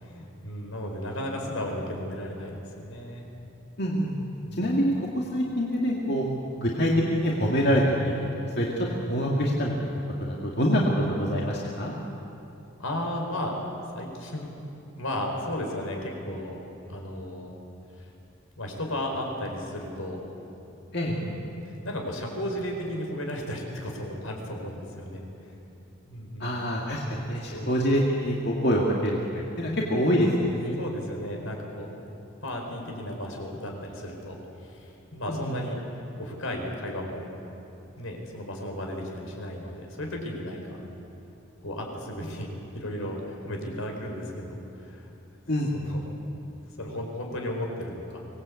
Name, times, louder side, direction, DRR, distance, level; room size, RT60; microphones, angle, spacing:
voice 1, 0.0-3.3 4.4-4.8 12.8-13.5 13.9-14.5 15.0-16.6 16.9-17.5 18.0-18.1 18.6-20.2 21.0-25.6 26.1-26.6 27.5-27.9 30.8-31.9 32.4-35.8 36.2-37.2 38.0-40.8 41.6-42.5 42.7-45.1 45.7-46.1 46.8-48.2, left 1 dB, 80° left, 1 dB, 4.8 m, -34 dB
voice 2, 3.8-4.2 4.6-6.3 6.6-8.3 8.6-9.9 10.2-11.9 20.9-21.1 26.4-30.8 35.3-35.5 45.5-45.7, equal, 50° left, -3 dB, 2.3 m, -25 dB
24.5 x 19.0 x 8.5 m, 3.0 s
head